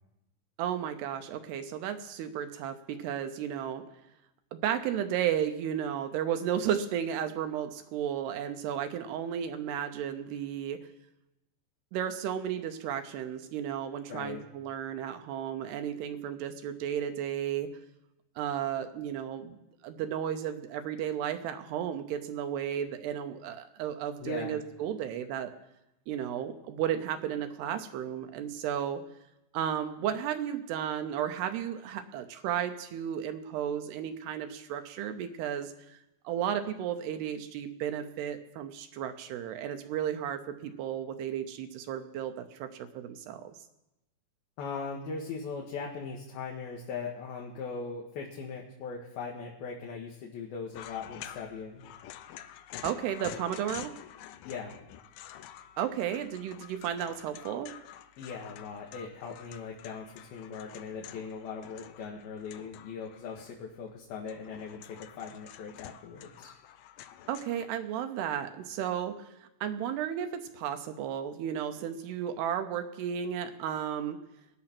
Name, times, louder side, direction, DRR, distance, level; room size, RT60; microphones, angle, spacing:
voice 1, 0.6-3.8 4.5-10.8 11.9-17.7 18.4-19.6 19.8-25.5 26.1-29.0 29.5-36.0 36.2-43.5 52.8-53.9 55.8-57.7 67.3-74.2, right 9 dB, 75° right, 8 dB, 2.7 m, -33 dB
voice 2, 14.1-14.5 24.2-24.6 44.6-51.9 54.4-54.8 58.2-66.5, left 5 dB, 65° left, -1 dB, 3.1 m, -40 dB
sound 1, 50.7-63.8 64.1-67.6, left 11 dB, 85° left, 2.0 m, -48 dB
18.5 x 13.0 x 6.0 m, 0.94 s
omnidirectional pair, 5.1 m